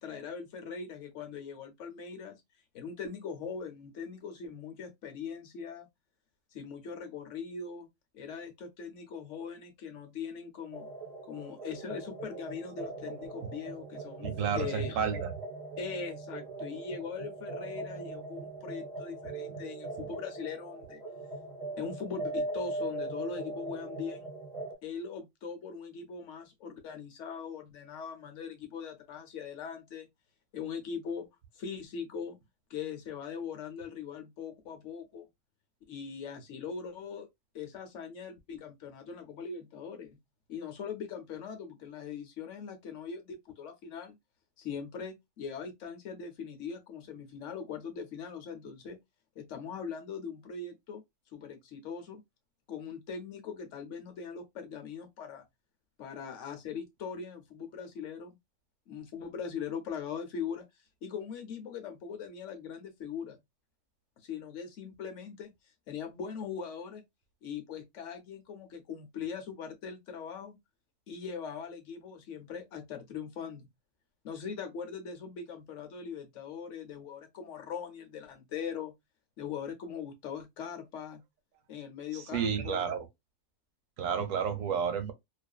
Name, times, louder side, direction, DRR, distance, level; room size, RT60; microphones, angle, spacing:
voice 1, 0.0-2.4 2.7-5.9 6.5-7.9 8.1-10.9 11.3-15.0 15.8-21.0 21.8-24.3 24.8-30.1 30.5-31.3 31.5-32.4 32.7-35.3 35.9-37.3 37.5-40.2 40.5-44.1 44.6-49.0 49.4-51.0 51.3-52.2 52.7-55.4 56.0-58.4 58.9-60.6 61.0-63.4 64.2-65.5 65.9-67.0 67.4-70.6 71.1-73.7 74.2-78.9 79.4-81.2 81.7-82.9, left 6 dB, 70° left, 1.0 m, -41 dB
sound 1, 10.7-24.7, right 2 dB, 30° right, 1.0 m, -40 dB
voice 2, 14.2-15.2 82.3-83.1 84.0-85.1, right 7 dB, 85° right, 1.0 m, -30 dB
2.5 x 2.4 x 2.2 m
omnidirectional pair, 1.3 m